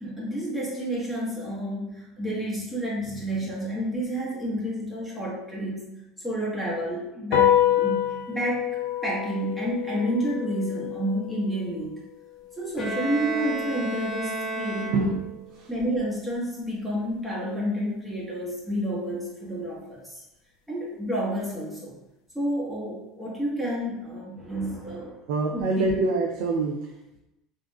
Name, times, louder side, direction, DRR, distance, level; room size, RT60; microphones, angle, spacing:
voice 1, 0.0-5.8 6.2-12.1 12.6-15.1 15.7-20.2 20.7-22.0 22.3-25.2 25.5-25.9, right 1 dB, ahead, -6 dB, 1.3 m, -30 dB
sound 1, 7.3-14.0, left 11 dB, 75° left, 0.3 m, -28 dB
Bowed string instrument, 12.8-15.5, right 3 dB, 30° left, 1.0 m, -32 dB
voice 2, 25.3-27.2, right 3 dB, 75° right, 1 dB, 0.4 m, -25 dB
3.6 x 2.5 x 2.3 m, 0.93 s
hypercardioid pair, 90°, 0 cm